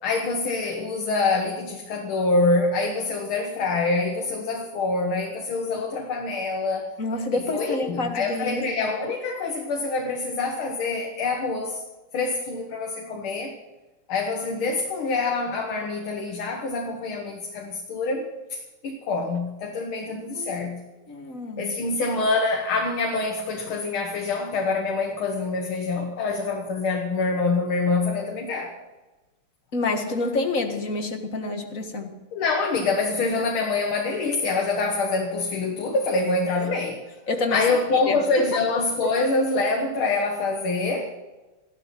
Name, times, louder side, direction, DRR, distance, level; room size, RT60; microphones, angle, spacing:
voice 1, 0.0-6.9 7.3-11.8 12.1-13.5 14.1-20.8 21.6-28.7 32.3-37.0 37.5-41.1, left 3 dB, 90° left, 2 dB, 2.3 m, -25 dB
voice 2, 7.0-8.9 20.3-20.7 21.1-21.8 29.7-32.1 33.4-33.5 37.3-38.6 39.0-39.1, left 2 dB, 40° left, 5 dB, 1.9 m, -28 dB
14.5 x 13.0 x 6.0 m, 1.1 s
omnidirectional pair, 2.2 m